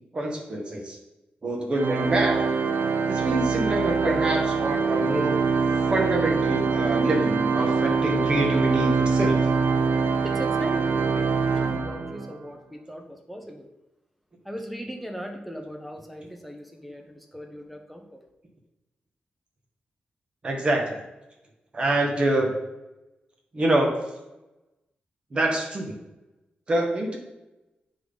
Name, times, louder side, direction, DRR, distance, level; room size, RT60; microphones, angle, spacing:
voice 1, 0.1-1.0 1.4-2.5 3.1-5.4 5.9-9.4 20.4-21.0 21.7-22.6 23.5-23.9 25.3-26.0 26.7-27.2, right 1 dB, 30° right, 1 dB, 1.4 m, -26 dB
Organ, 1.7-12.4, right 5 dB, 85° right, 0.4 m, -24 dB
voice 2, 10.2-13.7 14.4-18.3, equal, ahead, 3 dB, 0.8 m, -38 dB
9.2 x 3.8 x 4.0 m, 0.98 s
wide cardioid pair, 155°, 3 cm